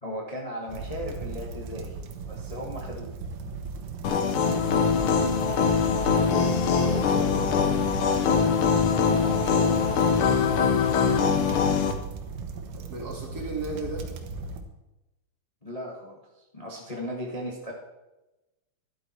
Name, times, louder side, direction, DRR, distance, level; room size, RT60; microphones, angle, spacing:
voice 1, 0.0-1.9 2.3-3.1 9.2-9.9 15.6-17.7, equal, 35° left, -2 dB, 0.5 m, -36 dB
sound 1, 0.7-14.6, right 4 dB, 75° right, 2.6 m, -37 dB
sound 2, 4.0-11.9, left 6 dB, 90° left, 1.1 m, -23 dB
voice 2, 6.3-7.9 12.8-14.1, right 1 dB, 35° right, 0 dB, 1.8 m, -36 dB
12.5 x 11.5 x 4.4 m, 1.0 s
omnidirectional pair, 3.8 m